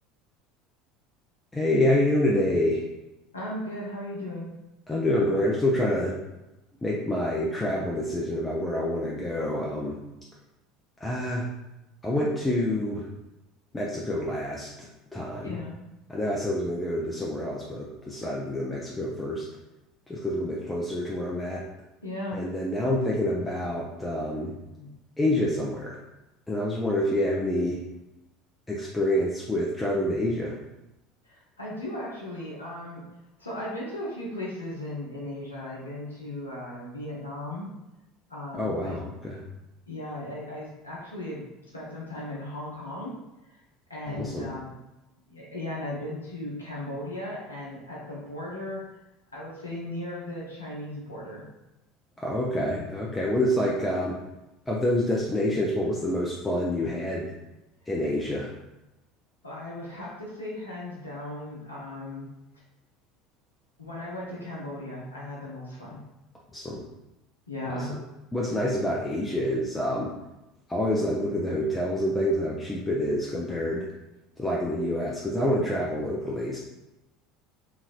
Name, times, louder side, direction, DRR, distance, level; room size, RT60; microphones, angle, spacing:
voice 1, 1.5-2.8 4.9-6.2 6.8-10.0 11.0-11.5 12.0-13.1 13.7-15.6 16.1-19.4 20.1-21.6 22.3-24.5 25.2-26.0 26.5-27.8 28.7-30.5 38.5-39.4 44.1-44.5 52.2-54.2 54.7-57.3 57.9-58.5 66.5-66.8 67.7-67.9 68.3-70.1 70.7-73.9 74.4-76.6, left 1 dB, 10° left, -4 dB, 0.5 m, -27 dB
voice 2, 3.3-4.5 15.4-15.8 22.0-22.5 24.8-24.9 31.2-33.0 33.4-37.7 38.3-39.0 39.9-41.4 41.7-43.2 43.9-44.7 45.3-48.8 49.3-51.4 59.4-62.2 63.8-66.0 67.5-67.9, left 1 dB, 80° left, -5 dB, 0.6 m, -36 dB
2.9 x 2.5 x 2.4 m, 0.97 s
figure-of-eight pair, 70°, 0 cm